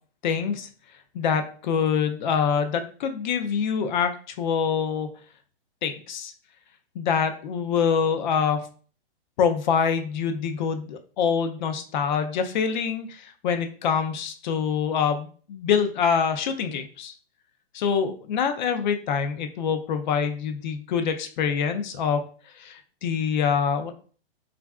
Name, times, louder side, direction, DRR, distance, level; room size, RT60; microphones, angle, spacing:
voice 1, 0.2-0.7 1.1-5.1 5.8-6.3 7.0-8.7 9.4-17.1 17.7-22.2 22.6-23.9, left 6 dB, 50° left, 7 dB, 0.5 m, -25 dB
3.2 x 2.4 x 2.3 m, 0.41 s
hypercardioid pair, 155°, 30 cm